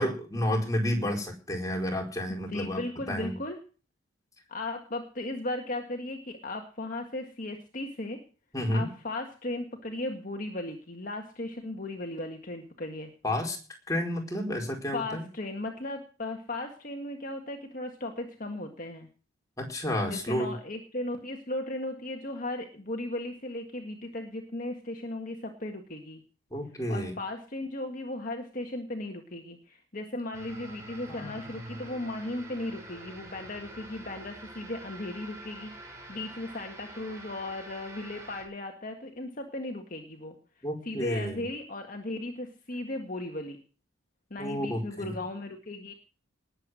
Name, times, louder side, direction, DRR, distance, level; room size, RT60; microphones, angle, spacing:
voice 1, 0.0-2.8 3.1-3.3 8.5-8.9 13.2-13.6 13.9-15.2 19.6-20.5 26.5-27.1 31.1-31.4 40.6-41.4 44.4-45.1, equal, 15° left, 1 dB, 4.7 m, -30 dB
voice 2, 2.5-3.6 4.5-8.2 8.7-13.1 14.9-19.1 20.1-26.2 26.9-43.6 44.3-45.9, left 2 dB, 40° left, 4 dB, 1.8 m, -36 dB
sound 1, 30.3-38.4, right 1 dB, 15° right, 5.8 m, -46 dB
19.5 x 8.2 x 6.4 m, 0.37 s
head